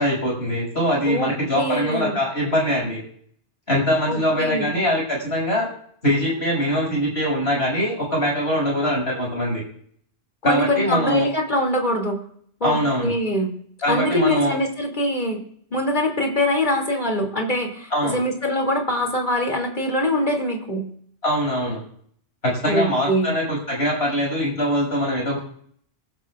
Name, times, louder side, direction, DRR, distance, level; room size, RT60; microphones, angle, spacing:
voice 1, 0.0-3.0 3.7-5.7 6.0-9.6 10.4-11.3 12.6-13.1 13.8-14.6 17.9-18.2 21.2-21.8 22.4-25.4, equal, 70° left, -2 dB, 6.8 m, -22 dB
voice 2, 1.1-2.2 4.1-4.7 10.4-12.2 12.6-12.8 13.0-13.5 13.9-15.4 15.7-20.9 22.7-23.3, left 1 dB, 45° left, 2 dB, 3.0 m, -23 dB
27.0 x 11.5 x 2.5 m, 0.62 s
omnidirectional pair, 1.1 m